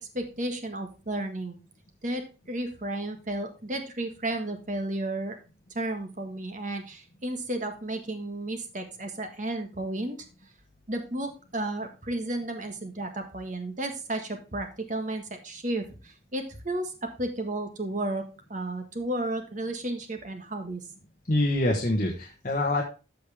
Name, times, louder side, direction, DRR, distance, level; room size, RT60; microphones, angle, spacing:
voice 1, 0.1-1.5 2.0-5.4 5.7-10.2 10.9-18.2 18.5-20.8, right 1 dB, 40° right, 5 dB, 1.6 m, -33 dB
voice 2, 21.3-22.8, left 1 dB, 40° left, 0 dB, 1.4 m, -25 dB
13.5 x 5.1 x 3.5 m, 0.32 s
head